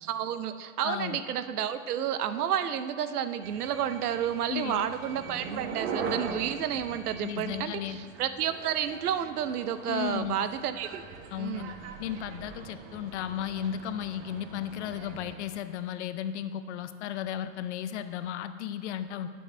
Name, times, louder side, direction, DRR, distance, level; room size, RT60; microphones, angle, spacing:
voice 1, 0.0-11.0 11.4-11.7, right 9 dB, 85° right, 11 dB, 0.8 m, -31 dB
voice 2, 0.8-1.2 4.5-4.9 7.2-8.0 9.8-10.4 11.3-11.7 12.0-19.3, left 10 dB, 50° left, 11 dB, 0.6 m, -34 dB
sound 1, 3.4-15.3, right 5 dB, 50° right, 1.0 m, -41 dB
8.5 x 7.3 x 5.4 m, 2.1 s
supercardioid pair, 155°, 44 cm